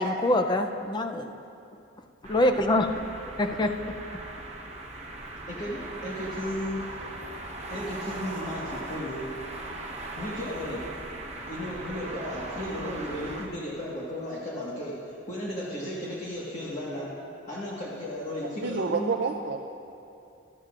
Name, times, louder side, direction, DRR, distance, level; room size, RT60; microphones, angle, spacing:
voice 1, 0.0-1.3 2.2-3.0 3.4-4.0, left 1 dB, 25° left, 6 dB, 0.5 m, -25 dB
sound 1, 2.2-13.5, right 2 dB, 35° right, 0.9 m, -39 dB
voice 2, 5.5-6.8 7.7-9.3 10.1-10.8 11.5-17.1 17.5-19.1, left 1 dB, 40° left, -7 dB, 1.6 m, -35 dB
voice 3, 18.4-19.6, right 4 dB, 65° right, 4 dB, 0.5 m, -29 dB
14.5 x 13.0 x 2.5 m, 2.7 s
head